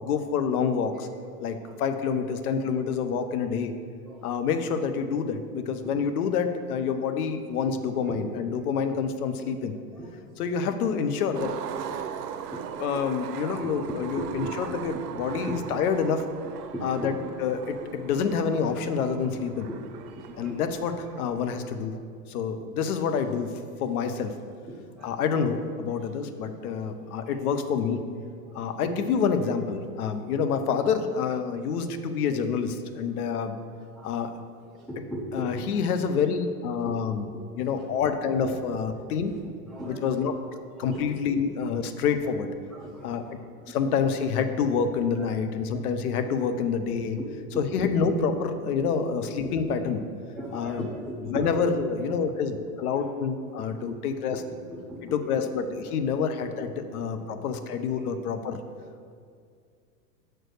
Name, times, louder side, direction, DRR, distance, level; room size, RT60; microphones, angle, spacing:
voice 1, 0.0-1.1 1.4-3.7 4.2-9.7 10.4-11.5 12.8-14.9 15.2-16.2 16.8-17.1 17.4-19.7 20.4-21.9 22.3-23.5 23.8-24.3 25.0-28.0 28.5-33.6 34.0-34.3 35.3-37.3 37.6-39.3 39.9-40.3 40.8-42.5 43.0-43.2 43.7-47.2 47.6-50.0 50.5-50.9 51.3-54.4 55.1-58.6, left 6 dB, 65° left, 9 dB, 0.9 m, -27 dB
voice 2, 1.4-1.7 2.5-2.6 4.0-4.4 7.6-7.7 8.1-8.2 8.5-8.7 9.4-10.5 11.9-13.0 13.4-15.6 16.6-17.2 19.6-20.7 21.9-22.0 22.6-22.7 24.7-25.1 26.6-26.7 27.3-27.4 28.5-28.9 32.3-32.4 33.1-33.3 33.9-34.2 34.7-35.6 36.8-37.0 37.3-37.9 39.7-40.0 40.8-41.1 42.2-42.3 42.7-43.3 43.7-43.8 45.2-45.3 47.0-47.1 47.5-47.9 48.9-49.0 49.4-49.5 50.3-51.5 52.9-53.2 53.4-53.8 54.3-54.4 54.7-55.3 55.8-55.9 57.9-58.1, right 1 dB, ahead, -4 dB, 0.5 m, -39 dB
Skateboard, 11.3-21.5, right 8 dB, 80° right, 0.7 m, -39 dB
6.1 x 4.6 x 6.5 m, 2.2 s
hypercardioid pair, 115°, 47 cm